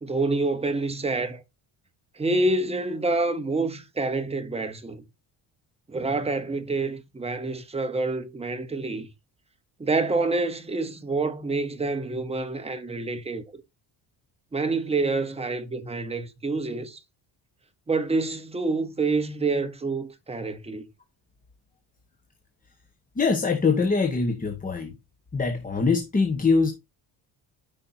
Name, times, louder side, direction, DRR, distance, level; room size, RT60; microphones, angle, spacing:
voice 1, 0.0-1.4 2.1-5.0 5.9-9.1 9.8-13.4 14.5-17.0 17.9-20.8, right 3 dB, 15° right, 1.0 m, -27 dB
voice 2, 23.2-24.9 25.3-26.7, left 4 dB, 20° left, 1.3 m, -23 dB
13.0 x 5.5 x 2.7 m
cardioid pair, 150°, 44 cm